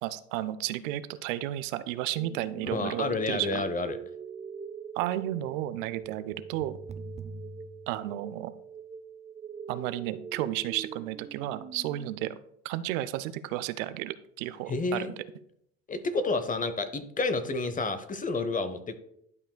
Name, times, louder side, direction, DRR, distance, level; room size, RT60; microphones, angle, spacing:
voice 1, 0.0-3.6 4.9-6.8 7.9-8.5 9.7-12.4 12.6-15.1, right 14 dB, 75° right, 14 dB, 0.6 m, -33 dB
sound 1, 2.2-12.2, right 6 dB, 20° right, 0.4 m, -43 dB
voice 2, 2.6-4.0 14.7-15.1 15.9-19.0, left 3 dB, 20° left, 11 dB, 0.7 m, -30 dB
11.5 x 5.4 x 2.2 m, 0.74 s
hypercardioid pair, 85°, 40 cm